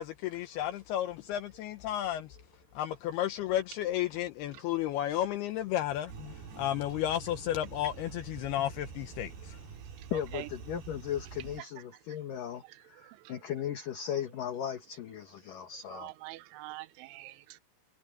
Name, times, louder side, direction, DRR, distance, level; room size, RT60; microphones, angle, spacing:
voice 1, 0.0-2.4 2.7-9.6, left 12 dB, 85° left, 2.2 m, -33 dB
sound 1, 6.1-11.6, right 6 dB, 55° right, 3.8 m, -46 dB
voice 2, 10.1-16.1, left 9 dB, 65° left, 2.2 m, -37 dB
voice 3, 12.6-13.3 15.9-17.6, right 17 dB, 80° right, 3.2 m, -45 dB
omnidirectional pair, 5.8 m